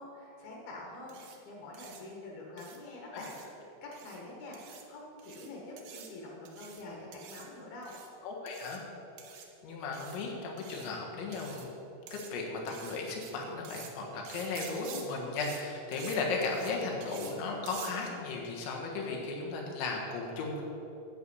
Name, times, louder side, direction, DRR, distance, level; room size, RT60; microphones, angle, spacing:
voice 1, 0.0-7.9, left 2 dB, 65° left, -2 dB, 3.0 m, -46 dB
sound 1, 1.1-1.4 1.7-2.0 2.6-2.8 3.2-3.5 3.9-4.2 4.5-4.8 5.2-5.5 5.8-6.1 6.5-6.8 7.1-7.5 7.8-8.1 8.5-8.8 9.2-9.5 9.9-10.2 10.6-10.9 11.3-11.7 12.1-12.3 12.7-13.3 13.7-13.9 14.3-15.0 15.4-15.6 15.9-16.2 16.4-16.7 17.0-17.3 17.7-17.9, right 8 dB, 70° right, 2.6 m, -48 dB
voice 2, 8.2-8.8 9.6-11.7 12.1-20.6, left 3 dB, 80° left, -1 dB, 3.8 m, -35 dB
11.5 x 8.3 x 5.5 m, 3.0 s
omnidirectional pair, 5.2 m